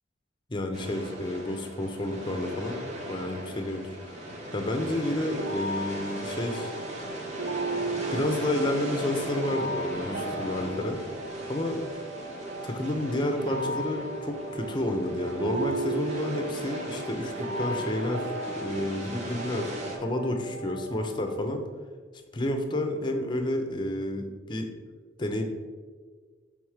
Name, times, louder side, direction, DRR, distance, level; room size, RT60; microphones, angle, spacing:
voice 1, 0.5-4.2 4.5-6.7 8.1-11.0 11.5-11.8 12.6-18.3 18.6-19.7 20.0-21.6 22.3-24.7 25.2-25.4, left 1 dB, 25° left, 5 dB, 0.6 m, -30 dB
sound 1, 0.7-20.0, equal, 40° right, 1.1 m, -38 dB
sound 2, 5.4-21.4, right 2 dB, 85° right, 0.7 m, -36 dB
5.9 x 3.6 x 4.9 m, 1.5 s
head